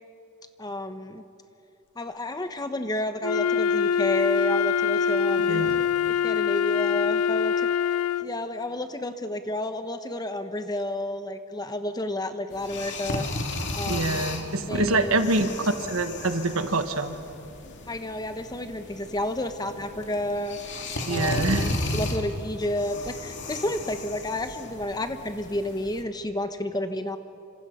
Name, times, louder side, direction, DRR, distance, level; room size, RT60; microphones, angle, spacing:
voice 1, 0.6-1.2 2.0-5.6 6.1-13.3 13.7-14.2 14.7-15.3 17.9-20.6 21.0-27.2, left 1 dB, 20° left, 8 dB, 1.0 m, -31 dB
Wind instrument woodwind instrument, 3.2-8.4, left 6 dB, 80° left, 0.6 m, -24 dB
voice 2, 5.5-5.8 13.9-17.2 21.1-21.7, right 2 dB, 65° right, 8 dB, 1.5 m, -25 dB
sound 1, 12.5-26.0, left 2 dB, 55° left, 2.5 m, -34 dB
29.0 x 26.0 x 5.6 m, 2.6 s
head